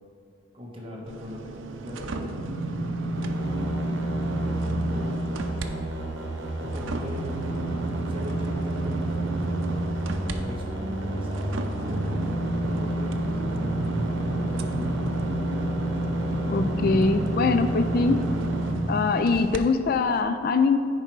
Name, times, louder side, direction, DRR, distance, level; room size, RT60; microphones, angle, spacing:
voice 1, 0.5-2.5 4.4-5.2 6.6-7.4 8.1-9.9 10.3-13.7, equal, 30° right, -2 dB, 1.2 m, -40 dB
sound 1, 1.1-5.7 6.1-19.6 20.1-20.2, right 1 dB, 85° right, 0.5 m, -30 dB
sound 2, 3.1-18.7, right 1 dB, 70° right, 1.1 m, -32 dB
voice 2, 16.5-18.2 18.9-20.8, left 4 dB, 50° left, 9 dB, 0.3 m, -23 dB
10.0 x 4.6 x 4.6 m, 2.4 s
head